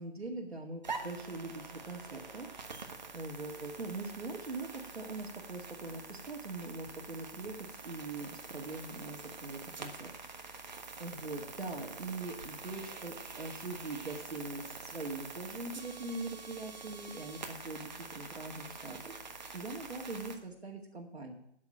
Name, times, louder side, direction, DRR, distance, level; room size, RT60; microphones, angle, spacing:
voice 1, 0.0-2.5 2.8-10.1 11.0-19.2 19.5-21.3, right 2 dB, 65° right, -2 dB, 2.2 m, -42 dB
sound 1, 0.8-20.4, right 4 dB, 40° right, 1.4 m, -46 dB
9.0 x 8.7 x 9.0 m, 0.74 s
figure-of-eight pair, 160°, 34 cm